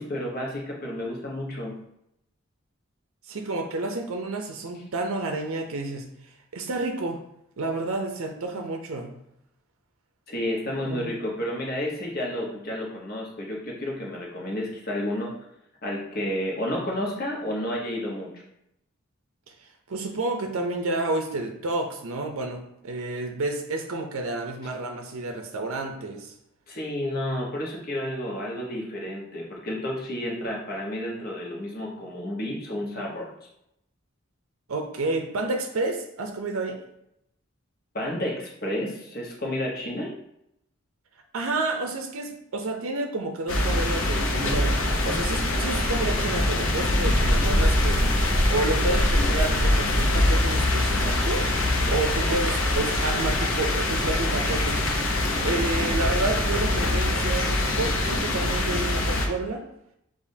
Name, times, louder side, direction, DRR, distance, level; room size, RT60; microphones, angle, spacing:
voice 1, 0.0-1.7 10.3-15.3 15.8-18.3 26.7-33.3 37.9-40.1, left 1 dB, 45° left, -2 dB, 1.0 m, -31 dB
voice 2, 3.3-6.1 6.5-7.2 7.6-9.1 10.8-11.1 19.5-26.3 34.7-36.8 41.3-48.1 48.5-51.4 51.9-54.9 55.4-59.6, right 2 dB, 80° right, 4 dB, 0.5 m, -30 dB
sound 1, 43.5-59.3, left 1 dB, 75° left, 0.7 m, -23 dB
7.0 x 2.5 x 2.7 m, 0.78 s
head